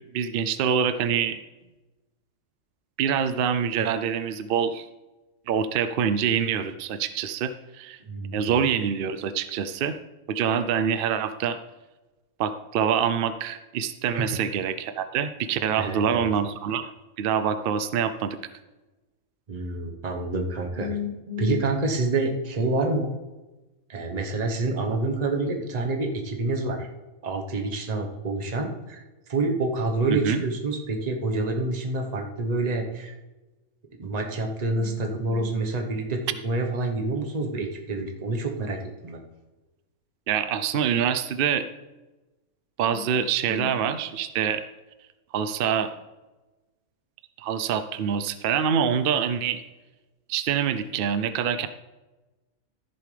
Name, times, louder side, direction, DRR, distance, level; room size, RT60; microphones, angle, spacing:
voice 1, 0.1-1.4 3.0-4.9 5.5-8.0 8.3-10.0 10.3-11.6 12.4-16.9 17.2-18.4 30.1-30.4 40.3-41.7 42.8-44.6 45.3-45.9 47.4-49.6 50.3-51.7, right 7 dB, 65° right, 11 dB, 0.5 m, -25 dB
voice 2, 8.0-8.6 14.2-14.4 15.7-16.3 19.5-23.1 23.9-26.9 27.2-29.0 29.3-33.2 34.0-39.2 42.9-43.1, right 2 dB, 30° right, 3 dB, 1.1 m, -27 dB
14.5 x 7.1 x 3.3 m, 1.1 s
omnidirectional pair, 1.5 m